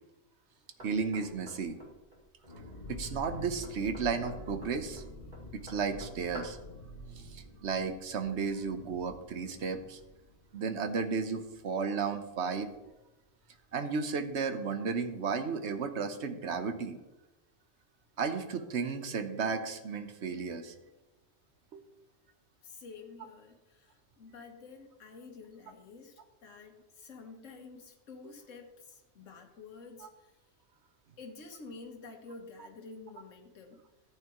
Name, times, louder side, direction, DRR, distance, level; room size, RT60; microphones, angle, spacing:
Knock, 0.8-6.7, equal, 40° right, 2.4 m, -52 dB
voice 1, 0.8-1.8 2.9-5.0 5.5-6.6 7.2-10.0 10.5-12.7 13.7-17.0 18.2-20.7, right 5 dB, 65° right, 8 dB, 1.2 m, -33 dB
sound 1, 2.4-11.9 12.1-12.2 12.5-12.8, left 1 dB, 40° left, 3.5 m, -48 dB
voice 2, 22.6-30.3 31.2-33.8, left 4 dB, 85° left, 2 dB, 1.5 m, -50 dB
14.0 x 8.8 x 3.0 m, 1.0 s
omnidirectional pair, 1.3 m